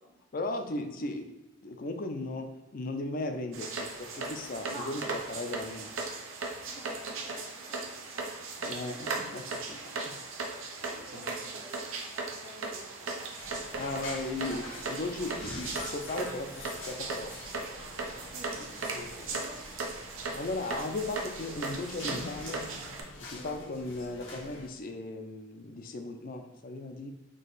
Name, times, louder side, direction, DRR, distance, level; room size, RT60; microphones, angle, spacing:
voice 1, 0.3-1.3 1.6-5.9 8.6-9.1 9.3-9.4 10.1-10.2 11.1-11.3 13.8-17.3 18.9-19.3 20.3-22.6 23.2-27.1, left 2 dB, 45° left, 6 dB, 0.4 m, -37 dB
sound 1, 3.5-23.0, right 3 dB, 90° right, 0.7 m, -38 dB
voice 2, 4.6-5.4 6.6-8.5 8.8-9.3 9.7-10.0 10.4-13.3 18.2-18.7 19.3-19.6 23.3-23.6, equal, 35° right, -1 dB, 0.7 m, -49 dB
sound 2, 13.4-24.7, left 2 dB, 75° left, 1.0 m, -45 dB
3.7 x 2.8 x 4.0 m, 1.0 s
head